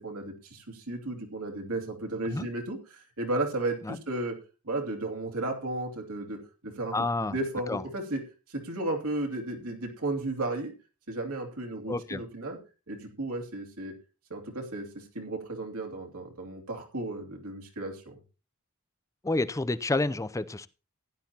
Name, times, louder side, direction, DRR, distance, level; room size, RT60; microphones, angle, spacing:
voice 1, 0.0-4.4 4.6-8.2 8.5-10.7 11.1-12.6 12.9-13.9 14.3-18.1, right 2 dB, 70° right, 2 dB, 2.7 m, -34 dB
voice 2, 6.9-7.3 7.7-7.8 11.9-12.2 19.2-20.7, left 2 dB, 15° left, 16 dB, 0.5 m, -29 dB
16.0 x 11.0 x 2.9 m, 0.32 s
head